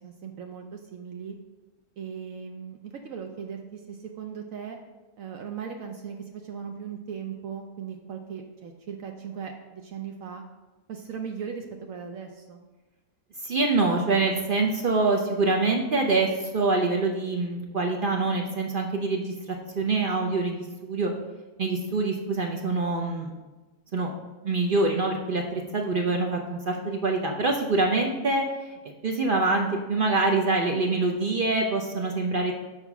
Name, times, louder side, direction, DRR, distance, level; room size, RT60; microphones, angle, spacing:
voice 1, 0.0-1.4 2.0-4.8 5.2-10.4 10.9-12.7, right 7 dB, 70° right, 3 dB, 1.0 m, -38 dB
voice 2, 13.4-21.1 21.6-23.3 23.9-24.1 24.4-32.5, right 3 dB, 50° right, 2 dB, 0.6 m, -25 dB
6.7 x 4.4 x 5.9 m, 1.2 s
omnidirectional pair, 1.6 m